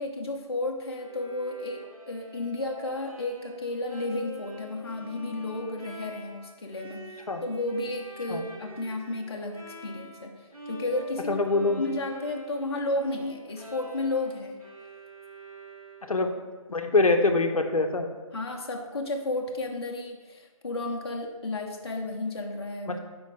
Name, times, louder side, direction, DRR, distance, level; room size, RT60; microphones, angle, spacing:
voice 1, 0.0-14.6 18.3-23.0, left 2 dB, 45° left, 1 dB, 0.8 m, -33 dB
Bowed string instrument, 0.9-10.3 10.5-16.3, equal, 85° right, 2.3 m, -46 dB
voice 2, 11.3-11.8 16.1-16.3 16.7-18.1 22.9-23.0, left 3 dB, 75° left, 5 dB, 0.9 m, -24 dB
6.5 x 5.1 x 4.8 m, 1.3 s
figure-of-eight pair, 175°, 18 cm